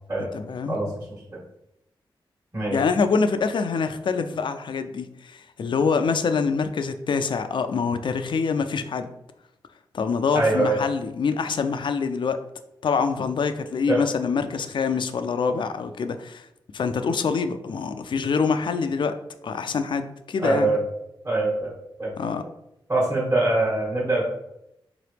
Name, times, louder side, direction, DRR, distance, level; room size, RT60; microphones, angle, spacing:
voice 1, 0.3-0.8 2.7-9.1 9.9-12.4 12.8-16.5 16.7-19.2 19.4-20.7 22.2-22.4, left 5 dB, 60° left, 9 dB, 0.4 m, -25 dB
voice 2, 10.3-10.8 13.9-14.0 20.4-20.8 21.2-21.7 22.0-22.1 22.9-24.2, right 2 dB, 35° right, -7 dB, 1.4 m, -23 dB
3.8 x 3.0 x 3.3 m, 0.83 s
cardioid pair, 65°, 9 cm